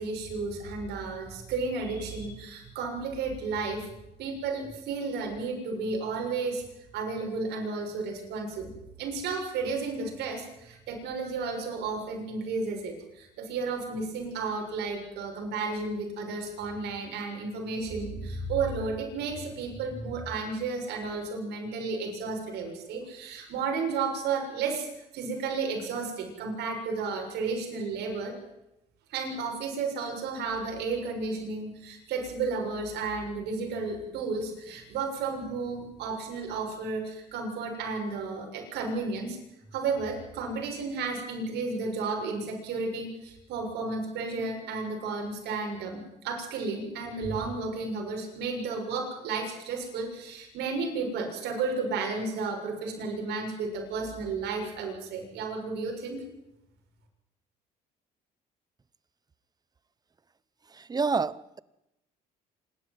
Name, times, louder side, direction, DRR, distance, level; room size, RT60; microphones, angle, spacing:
voice 1, 0.0-3.9 4.2-6.6 6.9-8.7 9.0-24.9 25.1-28.3 29.1-39.4 39.7-56.2, right 4 dB, 80° right, 2 dB, 6.8 m, -32 dB
voice 2, 60.9-61.6, right 4 dB, 25° right, 19 dB, 0.8 m, -27 dB
26.0 x 13.0 x 9.6 m, 0.90 s
cardioid pair, 110°, 17 cm